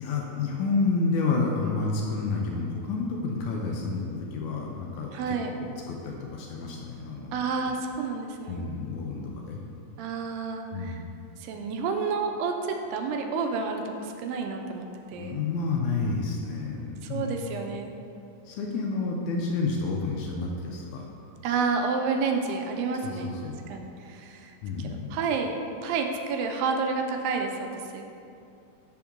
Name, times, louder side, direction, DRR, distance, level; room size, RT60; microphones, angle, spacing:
voice 1, 0.0-7.3 8.5-9.6 10.7-11.0 15.1-17.3 18.5-21.1 23.0-23.6 24.6-25.2, left 3 dB, 80° left, 0 dB, 1.8 m, -30 dB
voice 2, 5.1-5.5 7.3-8.7 10.0-11.0 11.4-15.4 17.0-17.9 21.4-23.3 23.7-25.6 25.8-28.0, right 4 dB, 85° right, 4 dB, 2.3 m, -30 dB
5.3 x 3.6 x 5.8 m, 2.6 s
omnidirectional pair, 3.9 m